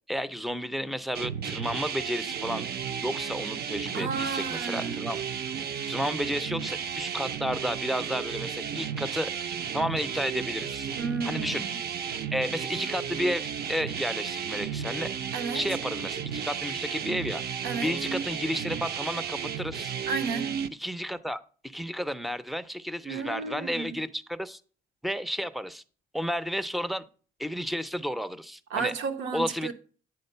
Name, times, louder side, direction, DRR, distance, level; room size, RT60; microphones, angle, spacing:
voice 1, 0.1-2.7 3.0-5.2 5.9-9.3 9.7-10.9 11.2-11.6 12.3-15.1 15.5-17.4 17.8-19.9 20.8-24.6 25.0-25.8 26.1-27.0 27.4-28.9 29.3-29.7, equal, ahead, 0.5 m, -32 dB
sound 1, 1.1-20.7, right 7 dB, 55° right, 0.5 m, -33 dB
voice 2, 3.9-4.9 11.0-11.7 15.3-15.6 17.6-18.0 20.1-20.7 23.0-24.0 28.7-29.7, right 5 dB, 80° right, 0.9 m, -32 dB
8.6 x 3.8 x 5.4 m
cardioid pair, 90°, 20 cm